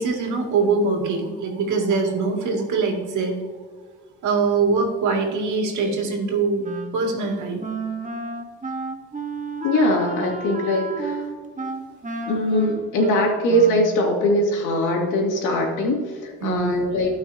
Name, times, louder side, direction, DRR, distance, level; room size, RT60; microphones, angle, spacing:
voice 1, 0.0-3.4 4.2-6.6 6.9-7.7 16.4-16.8, right 4 dB, 80° right, 1 dB, 2.3 m, -23 dB
Wind instrument woodwind instrument, 6.6-14.1, right 3 dB, 25° right, 1.2 m, -32 dB
voice 2, 9.6-11.3 12.2-17.2, left 1 dB, 90° left, -1 dB, 2.5 m, -21 dB
16.5 x 5.9 x 2.8 m, 1.6 s
cardioid pair, 90°, 30 cm